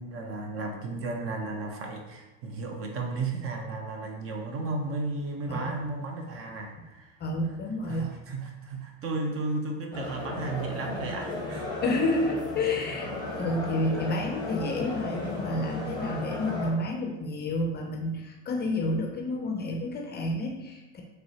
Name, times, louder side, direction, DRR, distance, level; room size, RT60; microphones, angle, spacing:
voice 1, 0.0-7.1 7.9-11.7, right 3 dB, 40° right, 2 dB, 0.7 m, -34 dB
voice 2, 7.2-8.1 11.8-13.1 13.4-21.0, left 2 dB, 30° left, 2 dB, 0.5 m, -30 dB
sound 1, 9.9-16.7, left 2 dB, 15° left, 1.2 m, -35 dB
4.6 x 3.2 x 2.8 m, 1.1 s
supercardioid pair, 115°, 36 cm